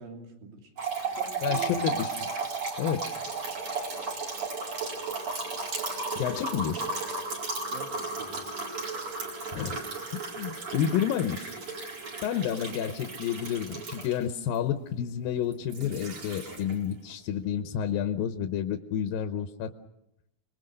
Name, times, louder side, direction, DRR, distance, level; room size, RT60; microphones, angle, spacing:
voice 1, 0.0-1.9 7.7-8.5, right 4 dB, 75° right, 2 dB, 4.6 m, -45 dB
sound 1, 0.8-14.6 15.5-16.9, right 3 dB, 50° right, 5.7 m, -34 dB
voice 2, 1.4-2.3 2.8-3.0 6.2-6.9 9.5-9.8 10.1-11.6 12.2-19.7, left 9 dB, 80° left, 7 dB, 2.7 m, -30 dB
27.0 x 21.5 x 6.6 m, 0.86 s
omnidirectional pair, 4.1 m